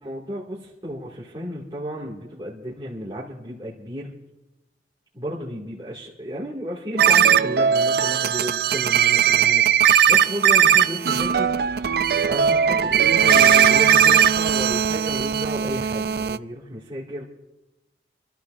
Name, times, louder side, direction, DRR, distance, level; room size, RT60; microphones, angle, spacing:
voice 1, 0.0-4.1 5.2-11.6 12.3-17.2, equal, 25° right, -6 dB, 2.1 m, -33 dB
sound 1, 7.0-16.4, right 8 dB, 55° right, 0.4 m, -18 dB
27.5 x 14.0 x 2.5 m, 1.0 s
head